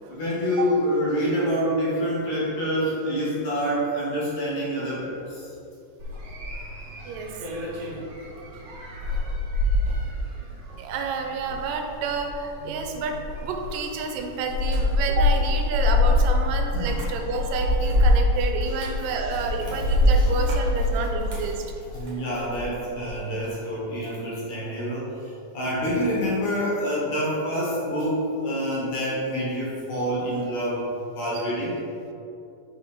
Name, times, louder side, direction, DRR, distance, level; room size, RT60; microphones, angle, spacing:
voice 1, 0.1-5.5 16.7-17.1 19.0-20.5 20.9-21.1 21.4-21.5 21.9-30.9 31.1-31.8, equal, 65° left, -5 dB, 2.2 m, -27 dB
sound 1, 6.0-22.7 23.0-23.5, left 1 dB, 50° right, 2.2 m, -25 dB
voice 2, 10.8-21.6 31.3-31.4, right 4 dB, 85° right, 4 dB, 2.3 m, -29 dB
5.9 x 5.2 x 3.7 m, 2.8 s
omnidirectional pair, 3.8 m